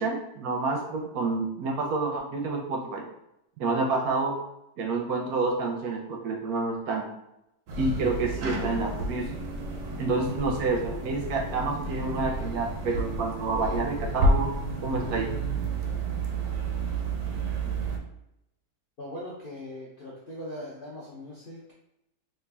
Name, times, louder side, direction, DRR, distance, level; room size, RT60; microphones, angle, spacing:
voice 1, 0.0-3.1 3.6-4.4 4.8-7.1 7.8-9.4 10.0-14.5 14.8-15.3, right 3 dB, 70° right, 1 dB, 0.9 m, -28 dB
sound 1, 7.7-18.0, right 2 dB, 90° right, 1.3 m, -30 dB
voice 2, 19.0-21.7, left 1 dB, 60° left, -5 dB, 0.5 m, -40 dB
3.3 x 2.3 x 3.3 m, 0.84 s
omnidirectional pair, 1.8 m